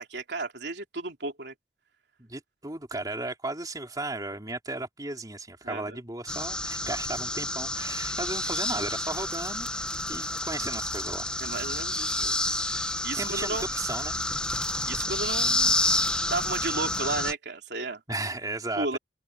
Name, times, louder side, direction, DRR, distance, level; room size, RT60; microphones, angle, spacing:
voice 1, 0.0-1.5 5.6-6.0 8.1-8.2 11.4-13.6 14.9-15.8 16.2-18.0 18.8-19.0, right 3 dB, 70° right, 3.6 m, -34 dB
voice 2, 2.2-9.7 10.1-11.3 13.1-14.2 18.1-19.0, right 2 dB, 20° right, 3.6 m, -35 dB
sound 1, 6.3-17.3, left 1 dB, 5° left, 1.1 m, -29 dB
open air
head